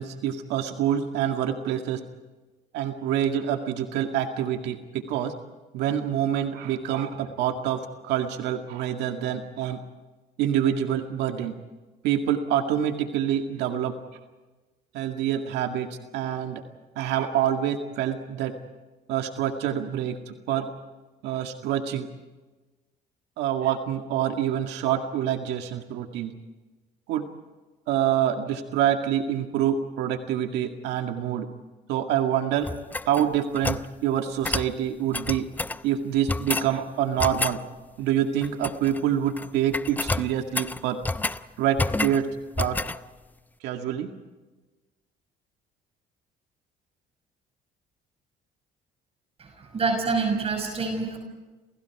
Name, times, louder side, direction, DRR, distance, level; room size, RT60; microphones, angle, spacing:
voice 1, 0.0-2.0 2.7-5.3 5.7-9.8 10.4-11.5 12.0-13.9 14.9-15.9 16.1-16.6 17.0-18.5 19.1-20.7 21.2-22.1 23.4-26.3 27.1-27.2 27.9-31.5 31.9-32.7 33.1-35.5 35.8-37.6 38.0-41.0 41.6-42.3 42.6-42.8 43.6-44.1, right 10 dB, 90° right, 5 dB, 2.0 m, -26 dB
sound 1, 32.6-33.9 34.4-34.7 35.1-35.8 36.3-36.7 37.2-37.6 38.4-39.0 39.3-39.5 39.7-41.4 41.8-42.2 42.6-43.0, left 2 dB, 10° left, 0.7 m, -29 dB
voice 2, 49.4-51.2, right 4 dB, 35° right, 4 dB, 5.9 m, -27 dB
29.5 x 28.0 x 4.8 m, 1.2 s
cardioid pair, 110°, 17 cm